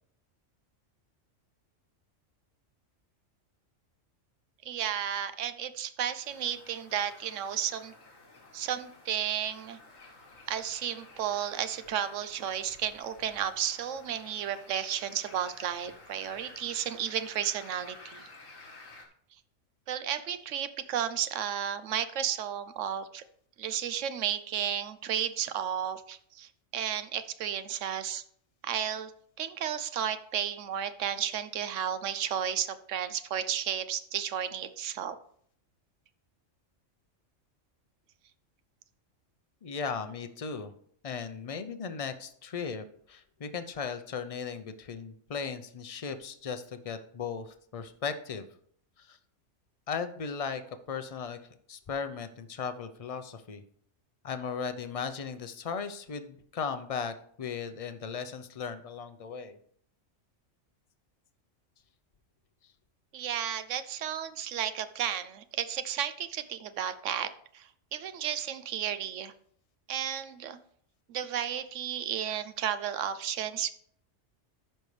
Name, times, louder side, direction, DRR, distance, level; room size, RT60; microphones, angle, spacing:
voice 1, 4.6-7.9 8.5-9.8 10.5-18.2 19.9-23.2 23.6-28.2 28.6-29.1 29.4-35.2 63.1-69.3 69.9-70.6 71.1-73.7, right 9 dB, 75° right, 12 dB, 1.0 m, -33 dB
sound 1, 6.2-19.1, left 3 dB, 80° left, 1.9 m, -53 dB
voice 2, 39.6-40.7 41.0-48.5 49.0-49.2 49.9-51.4 51.7-53.6 54.2-59.6, left 6 dB, 40° left, 9 dB, 0.5 m, -37 dB
13.5 x 5.4 x 3.2 m, 0.62 s
omnidirectional pair, 1.3 m